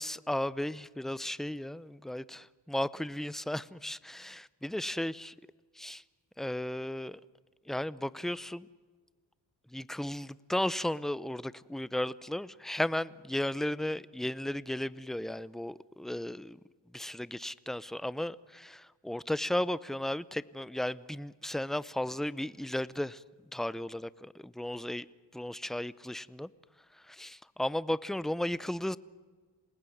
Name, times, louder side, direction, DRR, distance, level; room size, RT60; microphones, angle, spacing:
voice 1, 0.0-5.1 5.8-6.0 6.4-7.2 7.7-8.7 9.7-16.6 16.9-23.2 23.5-25.1 25.3-26.5 27.0-29.0, left 1 dB, ahead, 0.7 m, -35 dB
27.5 x 19.5 x 9.3 m
cardioid pair, 65°, 44 cm